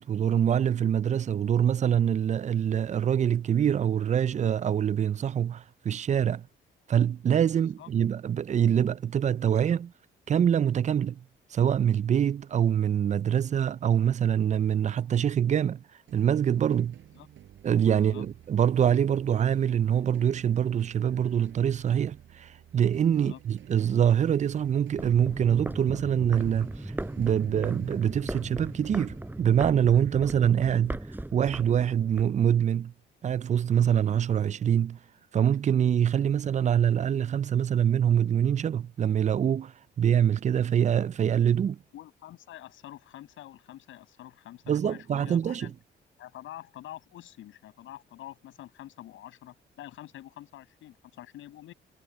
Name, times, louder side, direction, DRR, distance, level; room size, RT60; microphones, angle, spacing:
voice 1, 0.0-6.5 6.9-9.9 10.3-11.2 11.5-15.8 16.1-17.0 17.6-31.0 31.3-32.9 33.2-35.0 35.3-41.8 44.7-45.7, right 9 dB, 35° right, 0.4 m, -25 dB
voice 2, 7.5-7.9 17.1-17.3 18.0-18.3 23.1-23.4 41.9-45.7 46.2-51.7, left 13 dB, 80° left, 7.9 m, -46 dB
sound 1, 16.1-29.8, right 11 dB, 70° right, 5.0 m, -53 dB
sound 2, 24.9-32.3, right 1 dB, 10° right, 4.2 m, -37 dB
cardioid pair, 90°, 20 cm